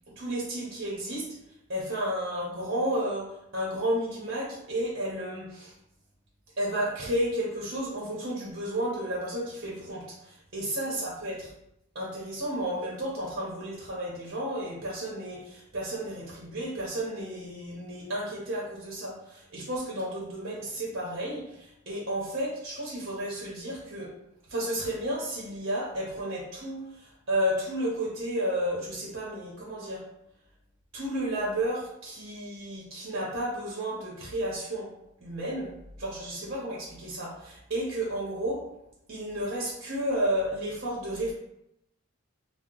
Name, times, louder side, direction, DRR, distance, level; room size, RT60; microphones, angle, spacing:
voice 1, 0.2-1.3 1.7-5.7 6.6-11.5 11.9-24.1 24.5-30.0 30.9-34.9 35.2-35.7 36.0-38.7 39.1-41.3, right 1 dB, 50° right, -5 dB, 0.7 m, -32 dB
2.8 x 2.0 x 3.7 m, 0.83 s
head